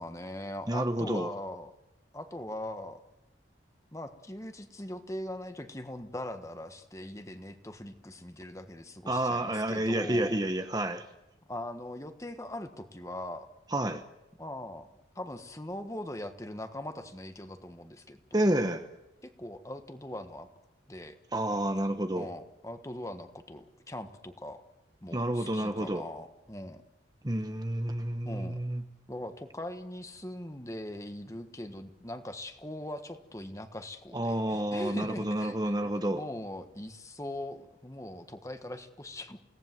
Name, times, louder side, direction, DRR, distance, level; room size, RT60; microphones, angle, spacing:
voice 1, 0.0-1.7 2.1-3.0 3.9-10.4 11.5-13.5 14.4-14.9 15.1-18.4 19.2-20.5 20.9-21.2 22.1-24.6 25.0-26.8 28.2-28.6 29.1-35.6 35.8-39.4, left 1 dB, 15° left, 1.5 m, -41 dB
voice 2, 0.7-1.3 9.1-11.1 13.7-14.0 18.3-18.9 21.3-22.3 25.1-26.0 27.2-28.8 34.1-36.2, right 1 dB, 20° right, 1.1 m, -29 dB
28.5 x 18.0 x 7.6 m
head